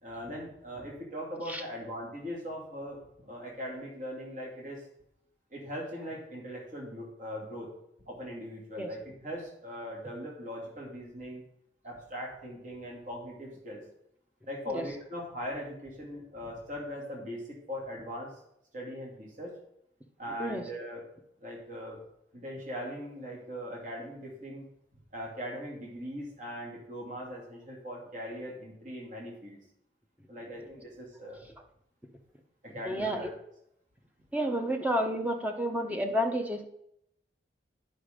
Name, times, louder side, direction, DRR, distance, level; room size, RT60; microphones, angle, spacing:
voice 1, 0.0-4.8 5.5-7.7 8.1-11.5 11.8-13.8 14.5-18.3 18.7-19.5 20.2-21.0 21.4-22.0 22.3-24.7 25.1-29.6 30.3-31.5 32.6-33.3, equal, 45° right, -2 dB, 2.3 m, -40 dB
voice 2, 32.9-33.2 34.3-36.7, equal, 10° right, 4 dB, 0.9 m, -30 dB
10.0 x 5.1 x 5.1 m, 0.75 s
head